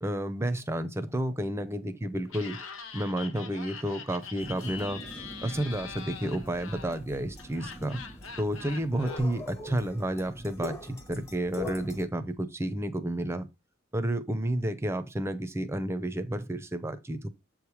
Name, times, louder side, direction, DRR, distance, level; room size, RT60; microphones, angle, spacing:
voice 1, 0.0-2.6 2.9-5.0 5.4-8.0 8.4-13.5 13.9-17.3, right 1 dB, 15° right, 0.7 m, -31 dB
Laughter, 2.3-9.2, left 6 dB, 80° left, 1.0 m, -43 dB
sound 1, 4.4-12.1, left 1 dB, 15° left, 1.0 m, -43 dB
7.7 x 3.4 x 4.8 m
head